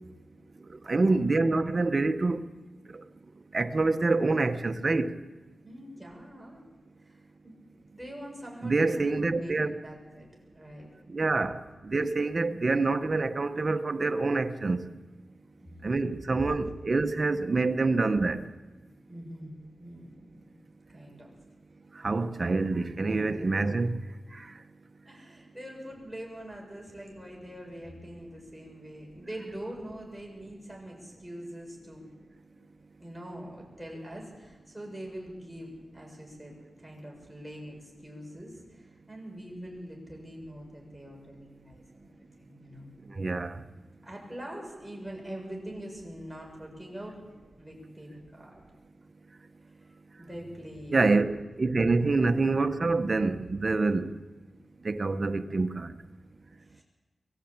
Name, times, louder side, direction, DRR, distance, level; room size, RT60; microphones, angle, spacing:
voice 1, 0.6-2.4 2.9-3.0 3.5-5.1 8.6-9.7 11.1-14.9 15.8-18.4 21.9-24.0 24.3-24.6 43.0-43.6 50.9-54.1 54.8-56.0, right 3 dB, 40° right, 1.2 m, -26 dB
voice 2, 5.6-6.6 7.0-7.5 7.9-10.3 10.5-10.9 15.6-15.8 16.4-16.5 19.1-20.6 20.9-21.3 25.1-32.1 32.5-32.6 33.0-36.5 36.8-42.9 44.0-47.2 47.6-48.6 49.6-49.9 50.2-51.1 52.0-52.3 55.4-55.6 56.6-56.8, equal, ahead, 7.5 m, -43 dB
24.0 x 15.0 x 8.9 m
wide cardioid pair, 90°, 0 cm